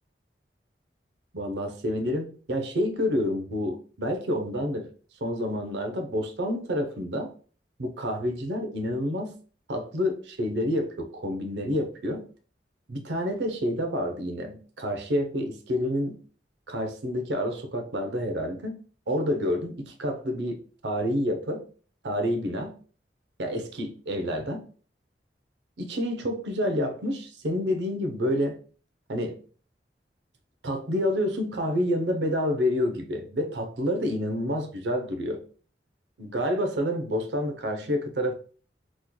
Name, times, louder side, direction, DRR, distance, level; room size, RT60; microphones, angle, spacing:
voice 1, 1.3-4.9 5.2-7.3 7.8-9.3 9.7-12.2 12.9-16.2 16.7-18.8 19.1-21.6 22.0-22.7 23.4-24.6 25.8-28.6 29.1-29.4 30.6-35.4 36.2-38.3, equal, 80° right, 6 dB, 0.7 m, -28 dB
3.1 x 2.2 x 3.7 m, 0.41 s
head